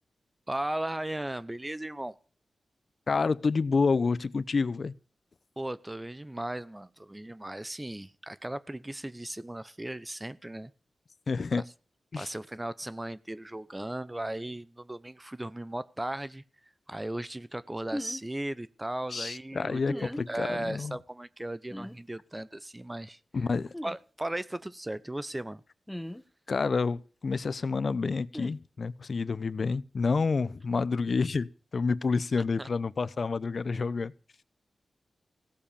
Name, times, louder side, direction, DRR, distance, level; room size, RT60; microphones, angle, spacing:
voice 1, 0.5-2.1 5.6-10.7 11.5-11.6 12.1-16.4 16.9-23.2 23.8-25.6 32.6-32.7, right 1 dB, 15° right, 0.8 m, -36 dB
voice 2, 3.1-4.9 11.3-11.6 12.1-12.3 19.1-21.0 23.3-23.7 26.5-34.1, left 4 dB, 60° left, 0.8 m, -29 dB
sound 1, 17.9-18.2 19.9-20.2 21.7-22.0 23.7-24.0 25.9-26.2 28.3-28.5, equal, 5° left, 1.3 m, -37 dB
16.5 x 7.1 x 8.6 m
cardioid pair, 60°, 0 cm